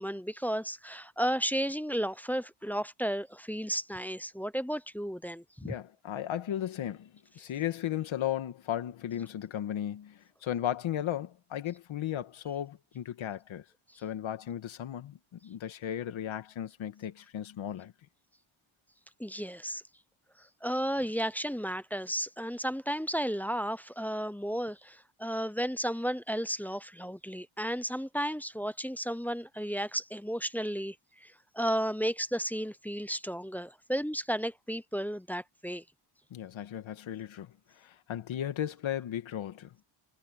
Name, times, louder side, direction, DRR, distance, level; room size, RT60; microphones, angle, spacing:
voice 1, 0.0-5.7 19.2-19.8 20.4-31.0 31.2-35.8, equal, 5° left, 0.3 m, -33 dB
voice 2, 5.6-13.6 14.0-17.9 36.3-39.8, left 11 dB, 65° left, 1.8 m, -36 dB
wide cardioid pair, 170°, 50 cm